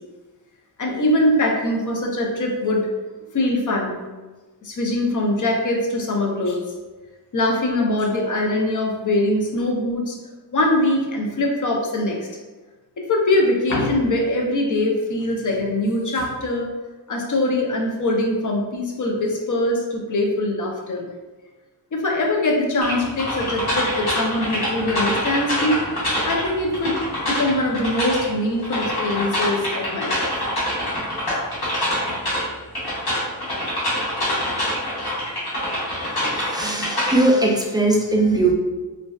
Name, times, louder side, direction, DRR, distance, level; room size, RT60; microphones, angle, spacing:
voice 1, 0.8-2.9 3.3-4.0 4.6-6.6 7.3-10.2 10.5-12.2 13.1-16.7 17.1-21.1 21.9-25.8 26.2-26.9 27.2-30.3, left 1 dB, 50° left, 0 dB, 0.5 m, -22 dB
sound 1, 22.8-37.1, equal, 65° left, 1.0 m, -25 dB
voice 2, 36.3-38.5, right 2 dB, 10° right, -1 dB, 0.3 m, -19 dB
2.5 x 2.2 x 2.2 m, 1.2 s
wide cardioid pair, 75°, 42 cm